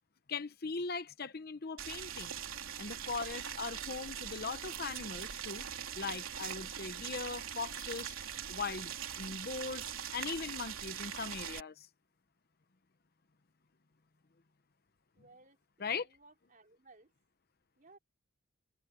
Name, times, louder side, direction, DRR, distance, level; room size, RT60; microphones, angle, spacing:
voice 1, 0.3-2.3 2.8-5.6 5.9-8.1 8.5-8.9 9.2-11.9 15.8-16.1, left 4 dB, 45° left, 0.8 m, -40 dB
Boiling, 1.8-11.6, right 9 dB, 75° right, 3.3 m, -42 dB
voice 2, 15.2-17.1 17.8-18.0, right 3 dB, 40° right, 4.6 m, -61 dB
head